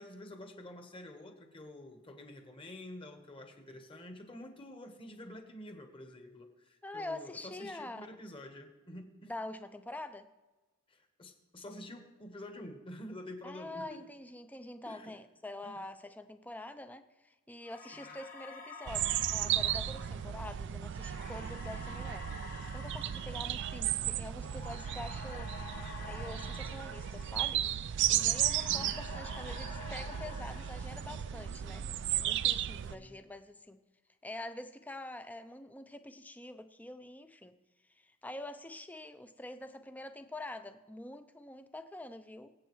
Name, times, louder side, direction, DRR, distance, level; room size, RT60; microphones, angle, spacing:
voice 1, 0.0-9.3 10.9-14.0 14.9-15.1 15.6-15.8 17.9-18.1 28.2-28.9 32.9-33.2, left 1 dB, 25° left, 5 dB, 1.2 m, -48 dB
voice 2, 6.8-8.1 9.3-10.3 13.4-22.3 22.7-27.7 28.1-31.9 32.2-33.8 34.2-37.6 38.0-42.5, left 1 dB, 10° left, 10 dB, 0.5 m, -45 dB
sound 1, 17.7-27.9 28.2-31.6, left 4 dB, 40° left, 1.5 m, -50 dB
sound 2, 18.9-32.9, right 11 dB, 55° right, 0.3 m, -34 dB
23.0 x 8.1 x 3.1 m, 1.2 s
head